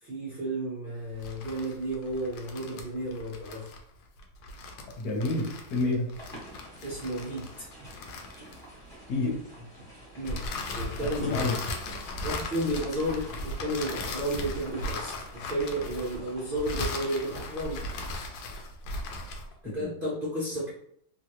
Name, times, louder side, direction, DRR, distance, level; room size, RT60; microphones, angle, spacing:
voice 1, 0.0-3.7 6.8-7.9 10.1-11.5 12.2-17.8 19.6-20.7, right 1 dB, 90° right, -7 dB, 0.4 m, -33 dB
sound 1, 1.1-8.9 10.2-19.5, left 2 dB, 75° left, 1.2 m, -37 dB
voice 2, 5.0-6.1 9.1-9.4 11.0-11.5 19.6-19.9, left 2 dB, 60° left, -1 dB, 1.3 m, -29 dB
sound 2, 6.1-17.5, right 1 dB, 5° left, 0.7 m, -49 dB
3.2 x 2.4 x 2.9 m, 0.68 s
omnidirectional pair, 2.1 m